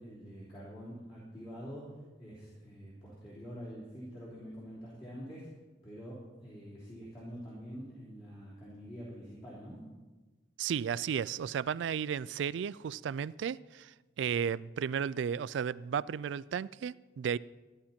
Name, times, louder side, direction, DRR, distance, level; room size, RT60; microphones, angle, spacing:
voice 1, 0.0-5.5 5.8-9.9, equal, 30° left, -9 dB, 3.3 m, -46 dB
voice 2, 10.6-17.4, right 7 dB, 90° right, 20 dB, 0.3 m, -34 dB
14.0 x 11.0 x 4.4 m, 1.2 s
head